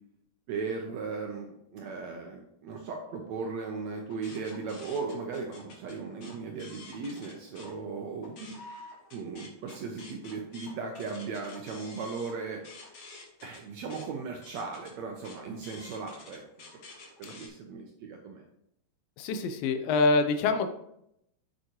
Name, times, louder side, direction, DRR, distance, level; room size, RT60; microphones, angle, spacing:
voice 1, 0.5-8.6 9.1-12.6 13.4-16.4 17.2-18.4, right 4 dB, 75° right, 2 dB, 1.7 m, -37 dB
sound 1, 4.1-7.7 8.1-17.5, left 3 dB, 55° left, 2.1 m, -50 dB
voice 2, 19.2-20.7, left 3 dB, 85° left, 8 dB, 2.5 m, -25 dB
7.7 x 6.8 x 3.0 m, 0.77 s
omnidirectional pair, 4.0 m